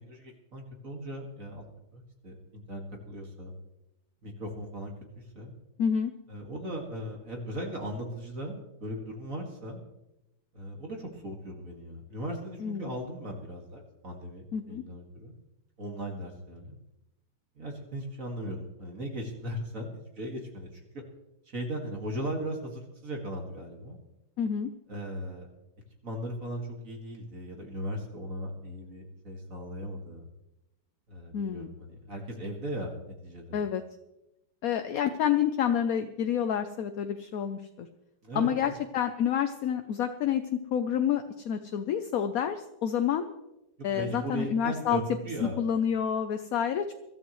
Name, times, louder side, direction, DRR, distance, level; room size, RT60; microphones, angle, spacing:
voice 1, 0.1-1.6 1.9-3.5 4.2-5.5 6.3-9.8 10.5-15.3 15.8-16.8 17.6-20.7 20.9-21.0 21.5-24.0 24.9-25.5 26.0-30.3 31.1-33.6 38.2-38.7 43.9-45.6, right 1 dB, 45° right, 1 dB, 2.3 m, -38 dB
voice 2, 5.8-6.1 12.6-12.9 14.5-14.8 24.4-24.7 31.3-31.7 33.5-33.8 34.6-37.9 38.3-43.3 43.8-45.0 45.4-46.9, left 8 dB, 60° left, 8 dB, 1.0 m, -28 dB
22.5 x 13.5 x 3.1 m, 0.94 s
omnidirectional pair, 2.0 m